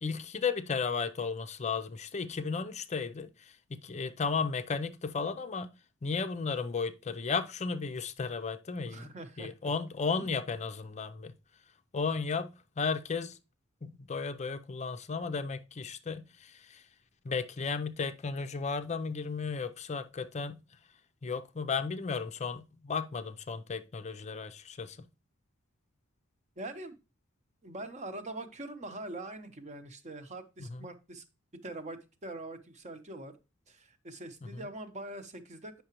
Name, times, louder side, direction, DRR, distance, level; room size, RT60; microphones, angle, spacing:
voice 1, 0.0-5.7 6.0-11.3 11.9-13.4 13.8-16.8 17.2-20.6 21.2-25.1 30.6-30.8 34.4-34.5, left 5 dB, 35° left, 0.5 m, -34 dB
voice 2, 8.8-9.7 26.6-27.0 27.6-31.2 31.5-33.4 33.7-35.7, right 2 dB, 35° right, 0.9 m, -43 dB
8.6 x 5.8 x 2.9 m
head